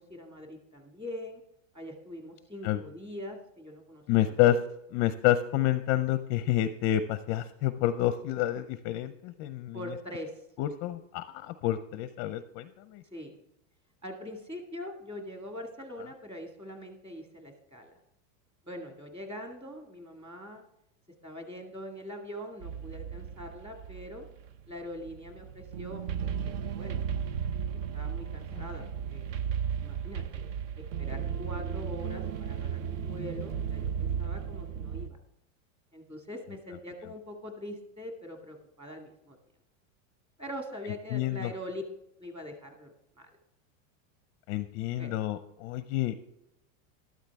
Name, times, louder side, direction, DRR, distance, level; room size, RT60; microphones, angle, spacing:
voice 1, 0.0-1.4 1.7-4.3 9.7-10.4 13.1-13.4 14.0-18.0 18.7-20.6 21.2-24.3 24.7-27.0 27.9-28.8 29.1-29.3 29.8-30.5 30.8-35.2 35.9-39.4 40.4-41.8 42.2-43.3 44.9-45.1, left 1 dB, 15° right, 3 dB, 1.9 m, -43 dB
voice 2, 4.1-4.6 4.9-9.8 10.6-13.0 28.5-28.7 41.1-41.5 44.5-46.3, left 13 dB, 35° left, 11 dB, 0.5 m, -28 dB
sound 1, 22.6-35.1, right 8 dB, 65° right, 0.8 m, -35 dB
13.0 x 12.5 x 3.5 m, 0.82 s
supercardioid pair, 155°, 41 cm